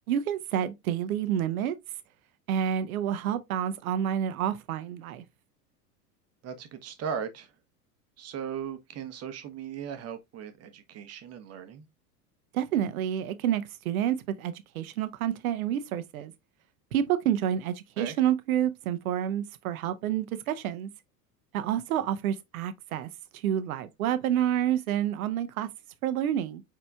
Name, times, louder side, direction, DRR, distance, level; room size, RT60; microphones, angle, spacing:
voice 1, 0.1-1.8 2.5-5.2 12.5-16.3 16.9-20.9 21.5-23.1 23.4-25.7 26.0-26.6, right 10 dB, 60° right, 0.8 m, -29 dB
voice 2, 6.4-7.5 8.2-11.8 18.0-18.2, right 7 dB, 30° right, 1.0 m, -37 dB
5.0 x 4.5 x 2.3 m
figure-of-eight pair, 80°, 48 cm